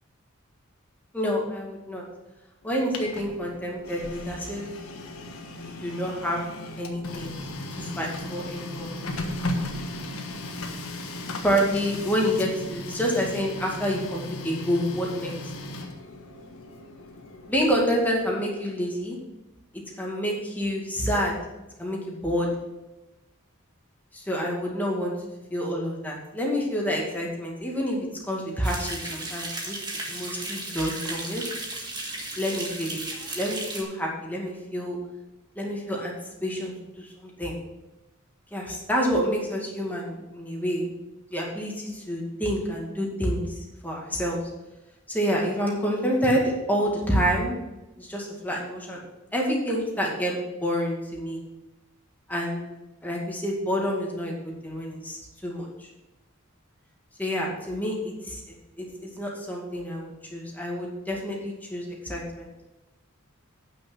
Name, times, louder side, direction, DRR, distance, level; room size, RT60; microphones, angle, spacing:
voice 1, 1.1-2.0 2.6-4.7 5.6-6.5 6.8-7.4 7.8-8.9 11.4-15.3 17.5-19.2 20.0-21.4 21.8-22.5 24.1-25.1 25.5-29.8 30.1-31.4 32.4-33.0 33.3-35.0 35.6-37.6 38.5-40.9 41.3-44.4 45.1-47.5 48.0-49.0 49.3-51.4 52.3-52.6 53.0-54.3 54.6-55.9 57.2-62.5, equal, 10° left, -2 dB, 2.2 m, -28 dB
Printer, 2.6-18.4, left 1 dB, 75° left, 1.4 m, -36 dB
sound 1, 28.6-33.8, right 2 dB, 20° right, 1.7 m, -35 dB
8.9 x 6.5 x 6.2 m, 1.0 s
head